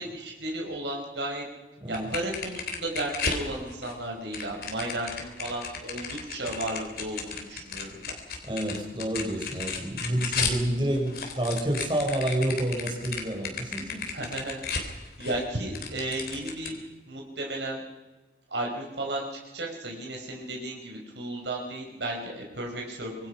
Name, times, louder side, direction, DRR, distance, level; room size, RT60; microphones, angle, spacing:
voice 1, 0.0-1.4 1.9-8.2 14.1-16.7 17.1-17.8 18.5-23.3, right 1 dB, 80° right, 0 dB, 5.1 m, -34 dB
sound 1, 1.9-3.9 4.3-10.6 10.9-15.4 15.7-16.7, left 5 dB, 55° left, 3.5 m, -34 dB
voice 2, 8.4-14.1, right 1 dB, 25° right, 2 dB, 4.4 m, -29 dB
25.5 x 22.0 x 5.8 m, 1.1 s
head